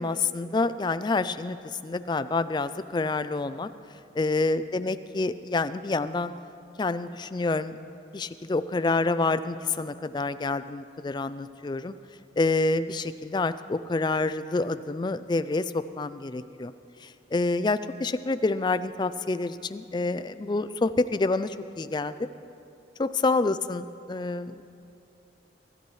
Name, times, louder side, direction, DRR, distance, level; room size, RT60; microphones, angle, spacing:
voice 1, 0.0-3.7 4.1-6.3 6.8-7.8 8.1-11.9 12.4-16.7 17.0-22.1 23.0-24.7, left 3 dB, 20° left, 13 dB, 0.3 m, -28 dB
23.5 x 13.5 x 3.2 m, 2.7 s
head